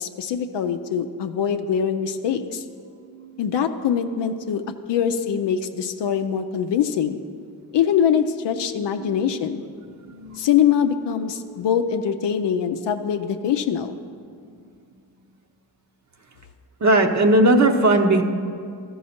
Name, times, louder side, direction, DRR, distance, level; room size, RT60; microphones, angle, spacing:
voice 1, 0.0-2.6 3.4-4.6 4.9-7.2 7.7-9.6 10.4-14.0, left 8 dB, 85° left, 7 dB, 0.5 m, -23 dB
voice 2, 3.0-3.7 4.0-4.7 5.0-5.2 7.8-8.3 8.5-8.7 9.0-9.2 9.6-9.7 10.1-10.7 16.8-18.2, right 2 dB, 40° right, 5 dB, 0.8 m, -21 dB
13.5 x 5.4 x 4.3 m, 2.2 s
cardioid pair, 50°, 41 cm